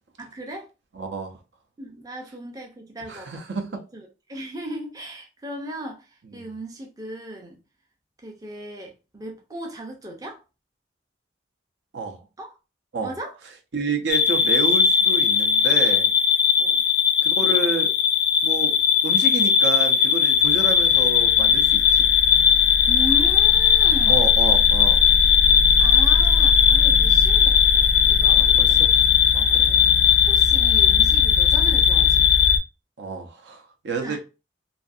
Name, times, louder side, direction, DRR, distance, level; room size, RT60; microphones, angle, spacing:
voice 1, 0.2-0.7 1.8-3.4 3.7-7.6 8.2-10.4 12.4-12.5 13.0-13.4 16.6-16.8 22.9-24.3 25.5-28.8 29.5-29.9 30.3-32.3 34.0-34.2, right 1 dB, 20° right, 0.4 m, -37 dB
voice 2, 0.9-1.4 3.1-3.7 6.4-6.5 11.9-12.2 12.9-13.1 13.7-16.1 17.2-17.9 18.4-18.7 19.0-22.1 24.1-25.0 28.3-28.9 29.3-29.7 33.0-34.2, right 4 dB, 70° right, 0.5 m, -29 dB
sound 1, 14.1-32.6, left 7 dB, 55° left, 0.4 m, -18 dB
2.6 x 2.4 x 2.4 m
head